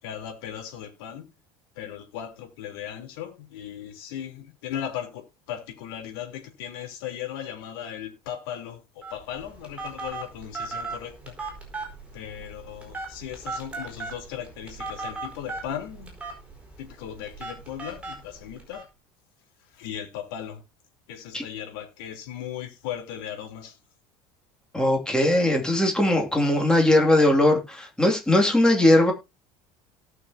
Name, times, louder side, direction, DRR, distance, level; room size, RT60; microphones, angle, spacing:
voice 1, 0.0-1.3 1.8-11.3 12.1-16.1 16.8-18.8 19.7-20.6 21.1-23.8, left 10 dB, 85° left, 3.6 m, -37 dB
Telephone, 9.0-18.8, right 3 dB, 10° right, 4.6 m, -38 dB
voice 2, 24.7-29.1, left 1 dB, 5° left, 2.6 m, -20 dB
18.0 x 6.3 x 2.8 m
cardioid pair, 145°, 12 cm